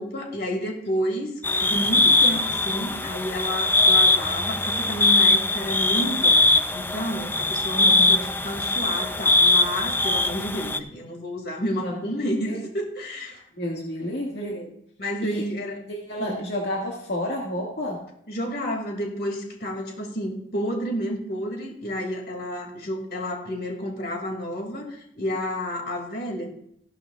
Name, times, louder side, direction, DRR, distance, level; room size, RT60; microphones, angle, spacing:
voice 1, 0.0-1.3 1.6-13.4 14.4-14.7 15.0-15.8 16.2-16.4 18.3-26.5, equal, 65° left, 1 dB, 2.4 m, -30 dB
sound 1, 1.4-10.8, left 2 dB, 10° left, 0.5 m, -21 dB
voice 2, 7.7-8.3 11.8-12.0 12.4-12.6 13.6-14.6 15.2-15.5 15.9-18.0, equal, 80° left, -2 dB, 1.9 m, -30 dB
15.0 x 12.5 x 2.4 m, 0.70 s
head